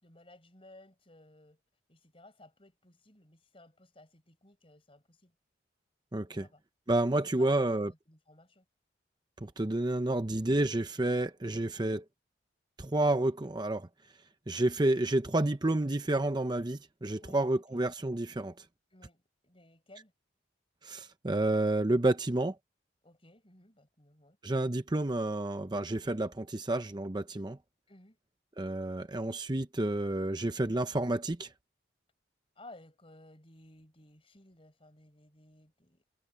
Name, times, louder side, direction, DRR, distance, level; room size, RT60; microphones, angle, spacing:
voice 1, 0.0-1.6 1.9-5.3 6.3-6.6 7.2-8.7 9.4-9.5 17.2-17.8 18.9-20.1 23.0-24.4 27.9-28.2 32.6-36.0, left 1 dB, 30° left, 6.1 m, -57 dB
voice 2, 6.1-6.5 6.9-7.9 9.4-12.0 12.8-13.9 14.5-18.6 20.8-22.6 24.4-27.6 28.6-31.5, right 2 dB, 25° right, 0.7 m, -30 dB
head